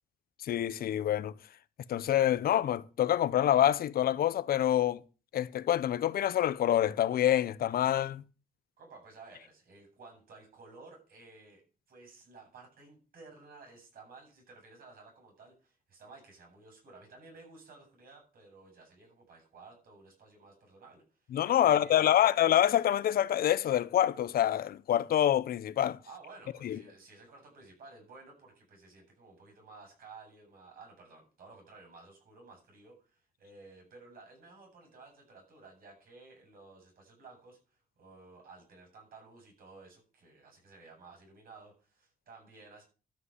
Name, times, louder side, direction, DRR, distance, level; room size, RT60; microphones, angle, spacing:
voice 1, 0.4-1.3 1.9-5.0 5.3-8.2 21.3-26.0 26.6-26.8, left 11 dB, 85° left, 0.7 m, -26 dB
voice 2, 8.8-11.6 11.9-21.3 21.6-22.3 26.0-42.8, right 3 dB, 75° right, 7.9 m, -54 dB
13.0 x 5.3 x 8.0 m
wide cardioid pair, 140°, 15 cm